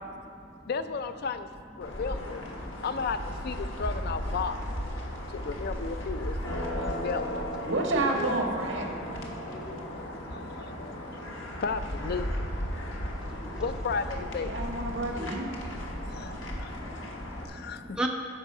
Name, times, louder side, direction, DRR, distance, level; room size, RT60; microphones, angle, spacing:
voice 1, 0.7-1.5 1.8-2.4 2.8-3.2 3.4-4.6 5.3-6.4 6.7-7.6 9.5-9.6 9.9-11.2 11.6-12.2 13.6-14.5 16.0-16.3 16.6-16.7 17.5-18.0, left 5 dB, 55° left, 10 dB, 0.4 m, -34 dB
sound 1, 1.8-17.4, equal, 90° left, 1.4 m, -36 dB
voice 2, 6.4-9.3 10.6-10.7 14.5-15.5 16.1-16.4, right 2 dB, 75° right, 1 dB, 1.5 m, -31 dB
voice 3, 8.9-11.5 12.7-13.6 15.1-15.2 15.6-18.1, right 1 dB, 5° right, 0 dB, 0.7 m, -41 dB
13.5 x 5.5 x 4.9 m, 2.5 s
head